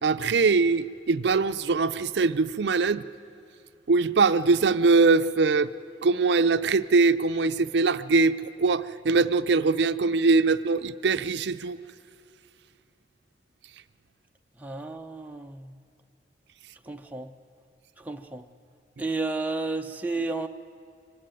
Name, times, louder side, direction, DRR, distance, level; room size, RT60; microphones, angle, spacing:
voice 1, 0.0-3.0 3.9-5.7 6.0-11.8, right 4 dB, 70° right, 12 dB, 0.5 m, -22 dB
voice 2, 14.6-15.7 16.9-17.3 18.1-18.4 19.0-20.5, right 3 dB, 10° right, 3 dB, 0.7 m, -32 dB
25.0 x 17.0 x 9.1 m, 2.4 s
head